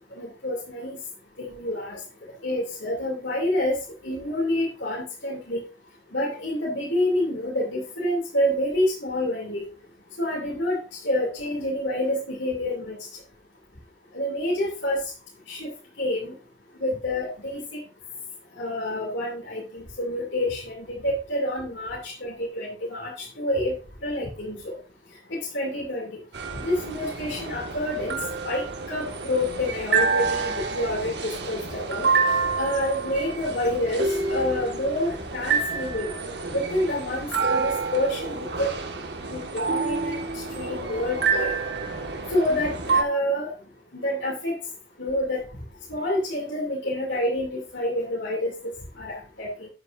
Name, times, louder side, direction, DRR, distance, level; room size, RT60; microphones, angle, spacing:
voice 1, 0.2-1.0 1.4-2.0 2.4-3.8 4.0-5.6 6.1-9.6 10.2-13.0 14.1-15.0 15.5-15.7 16.0-16.3 16.8-17.8 18.6-23.7 24.0-24.8 25.3-26.2 26.6-32.1 32.6-36.1 36.5-38.7 39.3-41.5 42.3-43.5 43.9-44.5 45.0-45.4 45.9-48.7 49.0-49.7, left 1 dB, 80° left, -3 dB, 2.9 m, -28 dB
sound 1, 26.3-43.0, right 4 dB, 65° right, 1.8 m, -28 dB
12.0 x 8.1 x 2.7 m, 0.34 s
head